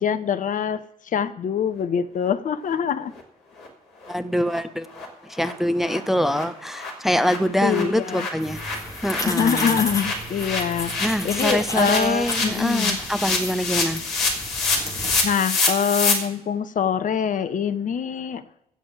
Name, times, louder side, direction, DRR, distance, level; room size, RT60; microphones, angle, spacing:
voice 1, 0.0-3.1 7.6-8.3 9.3-13.0 15.2-18.4, left 7 dB, 45° left, 12 dB, 0.8 m, -24 dB
sound 1, 3.2-3.3 3.6-3.7 4.0-4.1 4.5-4.6 4.9-5.1 5.4-5.5 5.8-6.0 6.2-16.1, left 3 dB, 65° left, 3.3 m, -27 dB
voice 2, 4.1-8.6 9.0-9.8 11.0-14.0, equal, ahead, 11 dB, 0.9 m, -24 dB
sound 2, 8.4-15.2, left 1 dB, 20° left, 4.0 m, -33 dB
16.5 x 6.4 x 7.5 m, 0.81 s
figure-of-eight pair, 40°, 19 cm